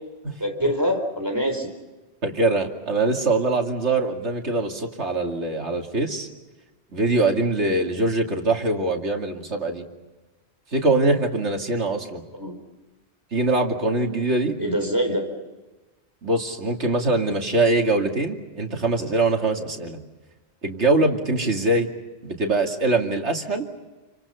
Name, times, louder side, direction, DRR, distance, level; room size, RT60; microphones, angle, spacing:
voice 1, 0.4-1.7 12.3-12.6 14.6-15.3, equal, 15° right, 4 dB, 4.3 m, -24 dB
voice 2, 2.2-6.3 6.9-9.8 10.7-12.2 13.3-14.6 16.2-20.0 20.6-21.9 22.2-23.7, right 2 dB, 85° right, 2 dB, 2.8 m, -23 dB
30.0 x 25.0 x 5.7 m, 1.2 s
omnidirectional pair, 1.1 m